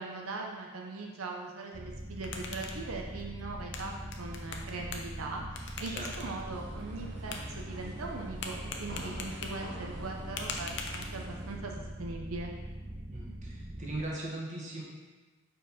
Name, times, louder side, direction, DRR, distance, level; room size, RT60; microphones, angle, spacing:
voice 1, 0.0-12.5, right 3 dB, 90° right, 0 dB, 0.7 m, -40 dB
sound 1, 1.7-14.0, right 1 dB, 20° right, 0.6 m, -42 dB
sound 2, 1.9-11.5, left 4 dB, 55° left, 0.7 m, -44 dB
voice 2, 5.9-6.3 13.1-14.8, right 1 dB, 35° right, -4 dB, 1.5 m, -39 dB
sound 3, 6.3-11.6, right 1 dB, 55° right, 1.0 m, -47 dB
5.1 x 4.7 x 5.6 m, 1.3 s
head